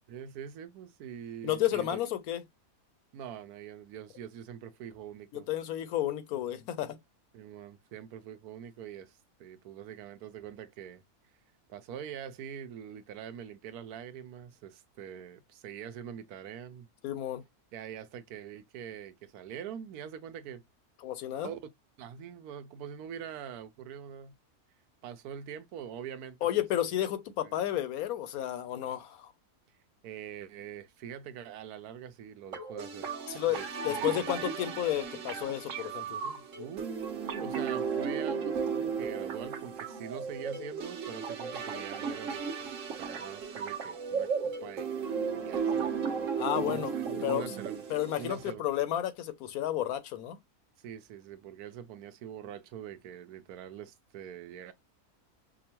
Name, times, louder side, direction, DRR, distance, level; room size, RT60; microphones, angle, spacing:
voice 1, 0.1-2.0 3.1-5.5 7.3-11.0 11.7-16.9 17.7-20.6 21.4-21.6 22.0-24.3 25.0-26.5 27.4-27.6 30.0-33.1 33.5-34.3 36.2-42.7 43.0-45.0 45.3-47.8 48.2-48.6 50.8-54.7, right 9 dB, 80° right, 1.1 m, -44 dB
voice 2, 1.4-2.4 5.3-7.0 17.0-17.4 21.0-21.5 26.4-29.3 33.3-36.2 46.4-46.9 47.2-47.4 47.9-50.4, left 12 dB, 75° left, 1.1 m, -32 dB
sound 1, 32.5-48.5, right 6 dB, 60° right, 1.2 m, -35 dB
5.2 x 2.2 x 2.8 m
omnidirectional pair, 1.6 m